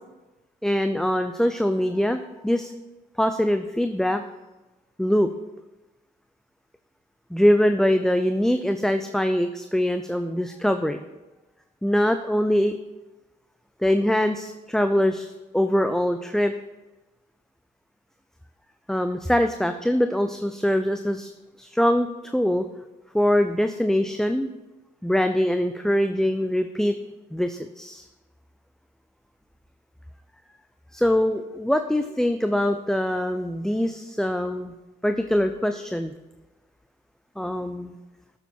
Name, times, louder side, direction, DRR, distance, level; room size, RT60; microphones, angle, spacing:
voice 1, 0.6-2.7 3.2-4.2 5.0-5.3 7.3-11.0 11.8-12.8 13.8-16.5 18.9-21.3 21.6-22.7 23.1-24.5 25.0-26.9 27.3-28.0 30.9-34.7 35.0-36.1 37.4-38.0, equal, ahead, 8 dB, 0.6 m, -23 dB
13.0 x 7.1 x 4.5 m, 1.1 s
supercardioid pair, 55°, 20 cm